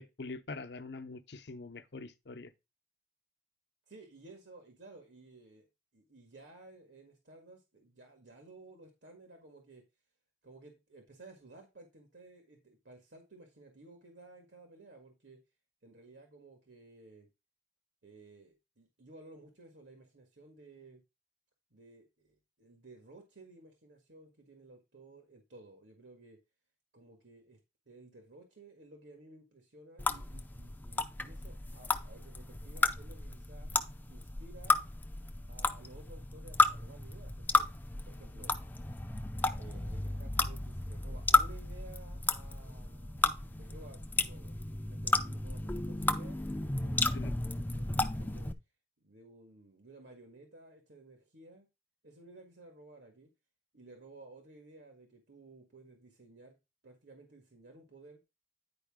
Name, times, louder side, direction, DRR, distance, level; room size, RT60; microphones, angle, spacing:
voice 1, 0.0-2.5 47.1-47.3, left 3 dB, 65° left, 0.7 m, -44 dB
voice 2, 3.9-5.7 5.9-9.8 10.4-15.4 15.8-17.3 18.0-21.0 21.7-26.4 26.9-27.6 27.9-33.7 34.1-34.8 35.5-37.7 38.0-38.5 39.6-48.5 49.0-51.7 52.0-53.3 53.7-56.6 56.8-58.2, right 2 dB, 75° right, 1.7 m, -55 dB
sound 1, 30.0-48.5, left 2 dB, 10° left, 0.4 m, -33 dB
9.7 x 4.8 x 3.6 m
head